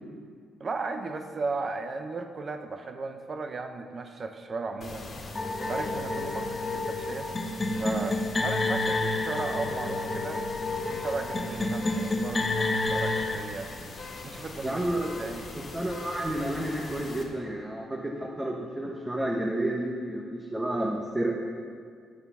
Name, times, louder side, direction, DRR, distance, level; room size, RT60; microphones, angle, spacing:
voice 1, 0.6-5.1 5.7-7.3 7.8-13.7 14.2-15.5, right 3 dB, 40° right, 7 dB, 0.8 m, -36 dB
sound 1, 4.8-17.2, left 3 dB, 50° left, 1.8 m, -42 dB
sound 2, 5.3-13.4, left 2 dB, 25° left, 1.0 m, -29 dB
voice 2, 14.6-15.3 15.7-21.4, right 1 dB, 10° right, -1 dB, 1.1 m, -30 dB
11.0 x 6.8 x 5.5 m, 2.2 s
cardioid pair, 90°, 0 cm